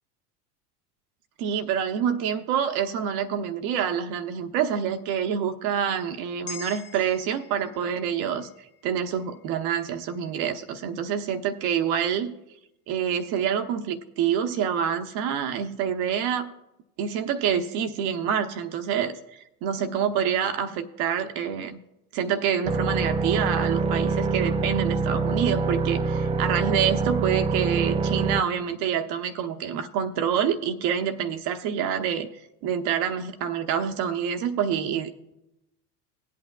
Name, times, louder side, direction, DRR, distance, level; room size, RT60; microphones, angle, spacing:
voice 1, 1.4-8.5 8.8-12.3 12.9-16.5 17.0-21.8 22.1-32.3 32.6-35.3, right 8 dB, 55° right, 7 dB, 0.9 m, -27 dB
sound 1, 6.5-10.9 11.3-11.5, left 5 dB, 55° left, 1.2 m, -46 dB
sound 2, 22.6-28.4, right 4 dB, 15° right, 0.4 m, -25 dB
19.0 x 8.4 x 2.3 m, 0.90 s
hypercardioid pair, 85°, 45 cm